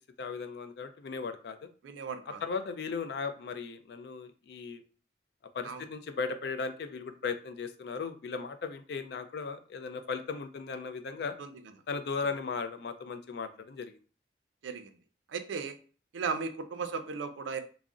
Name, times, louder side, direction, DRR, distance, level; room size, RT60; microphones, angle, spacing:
voice 1, 0.2-1.7 2.3-4.8 5.5-11.4 11.9-14.0, left 5 dB, 60° left, 9 dB, 0.3 m, -37 dB
voice 2, 1.8-2.4 5.6-5.8 11.2-11.5 14.6-15.0 15.3-15.8 16.1-17.6, right 5 dB, 85° right, 8 dB, 0.4 m, -36 dB
2.3 x 2.0 x 3.6 m, 0.38 s
head